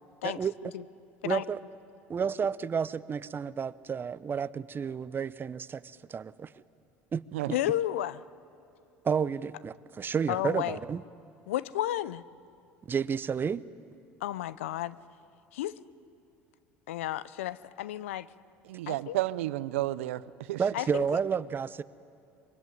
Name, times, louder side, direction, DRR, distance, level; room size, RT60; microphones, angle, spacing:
voice 1, 0.2-0.5 1.2-1.6 2.1-6.5 7.1-7.2 9.0-11.0 12.9-13.6 20.6-21.8, right 6 dB, 30° right, 17 dB, 0.8 m, -31 dB
voice 2, 7.5-8.2 10.3-10.8 11.5-12.2 14.2-15.0 15.5-15.7 16.9-18.3 18.9-19.2 20.7-21.0, left 13 dB, 85° left, 18 dB, 0.7 m, -32 dB
voice 3, 18.7-20.6, right 16 dB, 85° right, 17 dB, 0.6 m, -32 dB
24.5 x 23.0 x 9.6 m, 2.5 s
hypercardioid pair, 80°, 7 cm